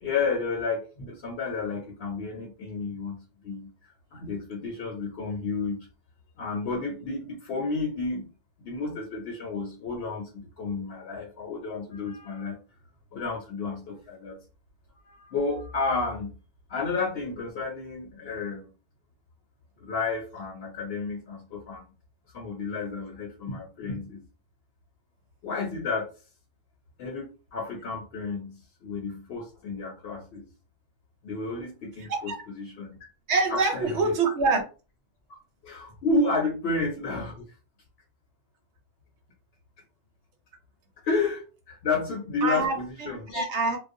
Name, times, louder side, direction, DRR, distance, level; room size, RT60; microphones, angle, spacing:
voice 1, 0.0-3.7 4.1-5.9 6.4-8.3 8.6-12.6 13.1-14.4 15.0-16.3 16.7-18.7 19.8-21.8 22.3-24.3 25.4-26.1 27.0-30.5 31.2-33.0 33.5-34.1 35.6-37.4 41.0-43.4, left 3 dB, 70° left, 1 dB, 0.8 m, -31 dB
voice 2, 32.0-32.5 33.3-34.6 42.4-43.8, right 3 dB, 80° right, 3 dB, 1.0 m, -26 dB
2.4 x 2.0 x 2.5 m, 0.34 s
omnidirectional pair, 1.2 m